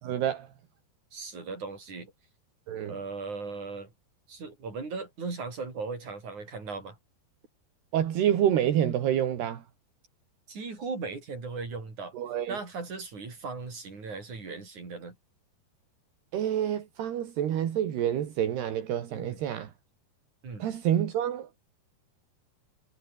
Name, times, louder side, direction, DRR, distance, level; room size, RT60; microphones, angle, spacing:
voice 1, 0.0-0.5 2.7-2.9 7.9-9.6 12.1-12.6 16.3-19.7 20.6-21.5, right 10 dB, 75° right, 4.3 m, -28 dB
voice 2, 1.1-2.1 2.8-3.9 4.3-7.0 10.5-12.1 12.5-15.2 19.1-19.4 20.4-20.7, right 4 dB, 45° right, 8.2 m, -38 dB
omnidirectional pair, 4.8 m